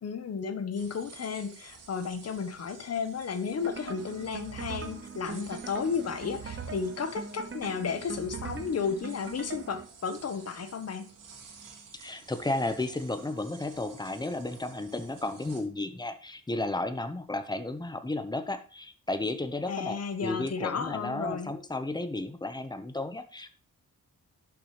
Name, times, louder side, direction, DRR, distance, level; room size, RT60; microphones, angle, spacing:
voice 1, 0.0-11.1 19.7-21.5, left 6 dB, 50° left, 10 dB, 1.2 m, -33 dB
sound 1, 0.7-15.6, right 5 dB, 80° right, 2.4 m, -52 dB
sound 2, 3.6-9.9, right 5 dB, 40° right, 1.3 m, -41 dB
voice 2, 11.9-23.5, left 2 dB, 15° left, 9 dB, 1.0 m, -33 dB
11.0 x 7.2 x 3.3 m, 0.38 s
wide cardioid pair, 125°, 32 cm